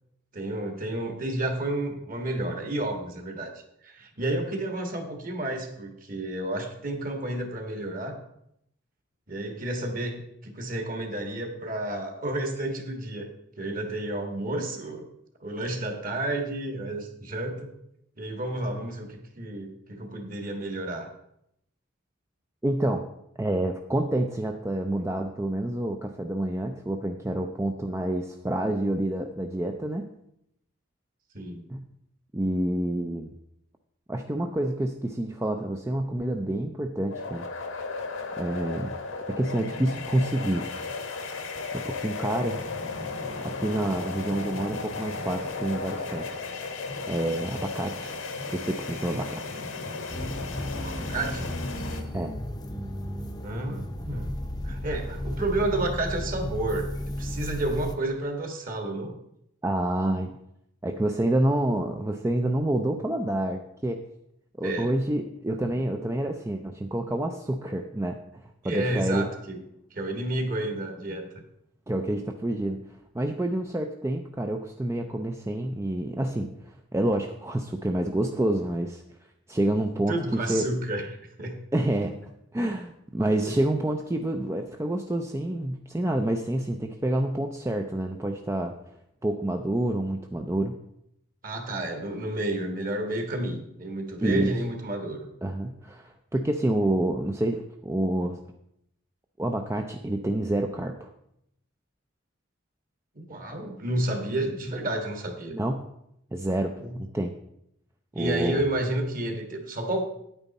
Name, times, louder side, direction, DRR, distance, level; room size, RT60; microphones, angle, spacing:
voice 1, 0.3-3.5 3.8-8.2 9.3-13.3 13.6-15.0 15.4-17.7 18.2-21.1 31.3-31.6 50.8-51.6 53.4-54.4 54.6-59.2 64.6-64.9 68.6-69.6 69.9-71.3 80.1-81.6 83.5-83.6 91.4-95.3 103.1-105.5 106.8-107.0 108.1-110.0, right 1 dB, 45° right, 4 dB, 1.7 m, -31 dB
voice 2, 22.6-23.0 23.4-30.1 31.7-31.8 32.3-33.3 34.1-37.5 38.4-39.0 39.3-40.7 41.7-42.6 43.4-46.4 47.1-48.2 48.5-49.6 52.1-52.3 59.6-60.3 60.8-64.0 64.6-69.3 71.9-79.0 79.5-80.6 81.7-82.2 82.5-88.7 89.2-90.8 94.2-94.5 95.4-98.4 99.4-101.1 105.5-105.9 106.3-106.7 107.0-107.3 108.1-108.6, right 1 dB, 15° right, 4 dB, 0.4 m, -28 dB
sound 1, 37.1-52.0, left 3 dB, 85° left, 1.5 m, -35 dB
sound 2, 50.1-57.9, left 1 dB, 20° left, 0.7 m, -34 dB
9.4 x 9.0 x 4.1 m, 0.77 s
head